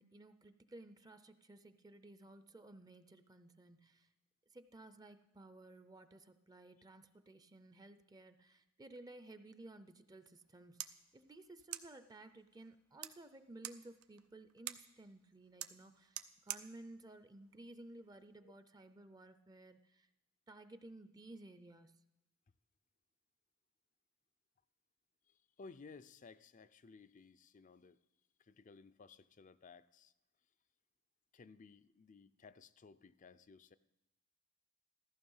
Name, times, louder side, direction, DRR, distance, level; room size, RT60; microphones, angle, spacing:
voice 1, 0.0-4.1 4.5-20.1 20.5-22.0, right 2 dB, 20° right, 10 dB, 0.5 m, -56 dB
sound 1, 10.4-18.4, right 12 dB, 85° right, 0.7 m, -51 dB
voice 2, 25.3-28.0 28.4-30.1 31.3-33.8, left 4 dB, 35° left, 15 dB, 0.4 m, -58 dB
14.5 x 14.5 x 5.5 m, 0.93 s
head